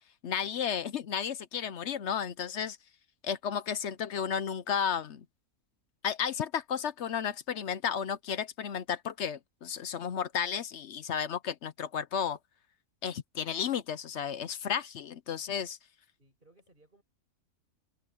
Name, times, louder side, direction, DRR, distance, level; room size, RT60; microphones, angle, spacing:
voice 1, 0.2-2.8 3.2-5.2 6.0-12.4 13.0-15.8, left 7 dB, 60° left, 0.8 m, -33 dB
voice 2, 16.2-17.0, right 2 dB, 30° right, 5.9 m, -63 dB
omnidirectional pair, 1.6 m